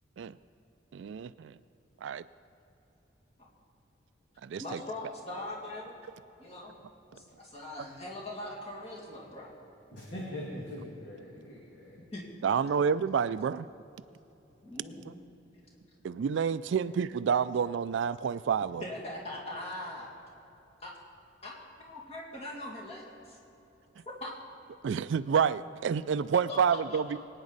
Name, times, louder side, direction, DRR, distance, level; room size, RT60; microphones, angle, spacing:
voice 1, 0.9-1.6 2.0-2.2 4.4-4.8 12.4-13.7 15.1-15.2 16.0-18.8 24.8-27.2, right 7 dB, 70° right, 15 dB, 0.3 m, -29 dB
voice 2, 4.6-5.9 6.4-6.7 7.1-9.5 12.1-12.2 14.6-15.1 18.8-20.1 20.8-20.9 21.4-21.5 21.8-23.0 24.2-24.3 26.5-27.2, left 1 dB, 30° left, -3 dB, 2.4 m, -41 dB
voice 3, 9.9-12.0, left 1 dB, 60° left, -5 dB, 2.3 m, -41 dB
22.5 x 9.7 x 4.0 m, 2.9 s
head